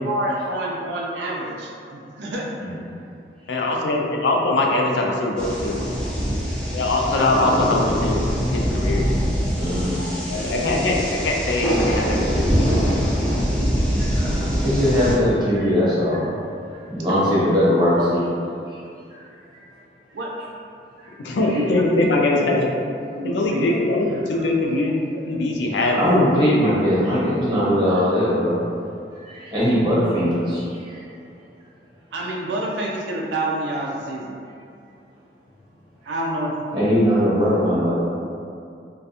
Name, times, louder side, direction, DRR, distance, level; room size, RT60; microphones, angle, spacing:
voice 1, 0.0-2.5 10.0-10.1 10.3-11.0 11.7-11.9 12.2-13.5 17.1-17.3 20.1-20.3 21.4-22.2 22.9-23.6 25.1-25.2 32.1-34.4 36.1-36.5, right 1 dB, 80° right, -2 dB, 0.4 m, -29 dB
voice 2, 3.5-5.8 6.7-9.1 10.3-12.7 21.2-22.7 23.2-25.0 25.3-26.8, left 2 dB, 80° left, 0 dB, 0.4 m, -22 dB
sound 1, 5.4-15.1, equal, 5° left, 0.3 m, -23 dB
voice 3, 9.6-10.2 14.0-16.3 16.9-18.3 19.1-19.2 25.9-28.6 29.3-30.6 36.7-37.9, equal, 25° right, -10 dB, 0.8 m, -20 dB
2.4 x 2.2 x 2.7 m, 2.5 s
head